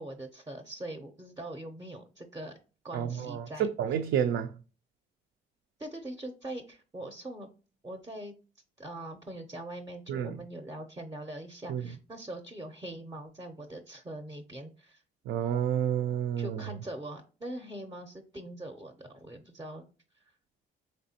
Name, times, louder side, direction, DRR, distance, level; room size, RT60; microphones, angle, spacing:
voice 1, 0.0-2.5 2.8-3.7 5.8-7.5 7.8-8.3 8.8-15.0 16.4-20.2, right 1 dB, 15° right, 0.5 m, -42 dB
voice 2, 2.9-4.5 10.1-10.4 11.7-11.8 15.3-16.6, right 9 dB, 80° right, 0.4 m, -30 dB
4.1 x 3.3 x 2.7 m
cardioid pair, 90°, 20 cm